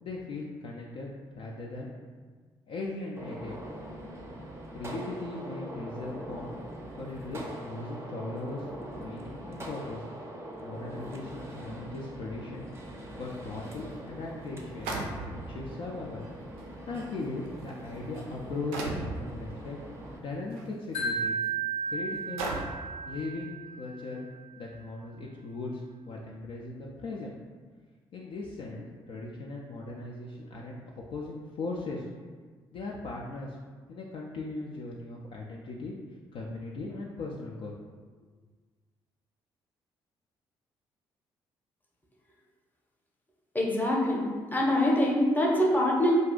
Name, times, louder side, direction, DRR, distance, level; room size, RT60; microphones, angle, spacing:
voice 1, 0.0-1.1 1.4-1.9 2.7-3.5 4.7-6.5 7.0-8.7 8.9-10.0 10.6-12.6 13.2-15.0 15.3-16.3 16.9-18.7 19.0-19.8 20.2-21.3 21.9-22.5 23.1-24.3 24.6-27.3 28.1-32.1 32.7-33.6 33.9-35.9 36.3-37.7 38.2-38.3, left 3 dB, 45° left, -3 dB, 0.4 m, -38 dB
Gunshot gunfire, 3.2-20.2, right 1 dB, 20° right, 0.5 m, -42 dB
sound 1, 13.7-13.8 14.8-15.6 16.6-16.7 17.5-17.7 18.7-19.2 20.5-20.6 21.3-21.4 22.4-22.9, right 2 dB, 70° right, 0.4 m, -34 dB
Wind chime, 20.9-24.1, right 4 dB, 65° left, 0.7 m, -33 dB
voice 2, 43.5-44.3 44.5-46.1, left 1 dB, 15° left, -3 dB, 0.7 m, -24 dB
2.5 x 2.3 x 3.6 m, 1.5 s
figure-of-eight pair, 45°, 13 cm